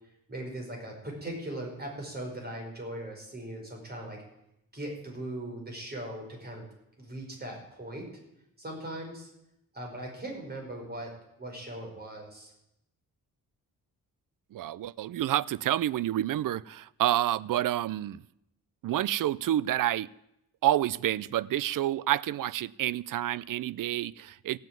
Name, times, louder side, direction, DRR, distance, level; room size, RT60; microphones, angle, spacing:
voice 1, 0.3-4.2 4.7-6.7 7.0-8.1 8.6-9.3 9.7-11.1 11.4-12.5, right 1 dB, 25° right, 1 dB, 5.2 m, -39 dB
voice 2, 14.5-18.2 18.8-20.1 20.6-24.6, right 13 dB, 65° right, 21 dB, 0.5 m, -28 dB
16.5 x 7.9 x 9.2 m, 0.82 s
wide cardioid pair, 135°, 35 cm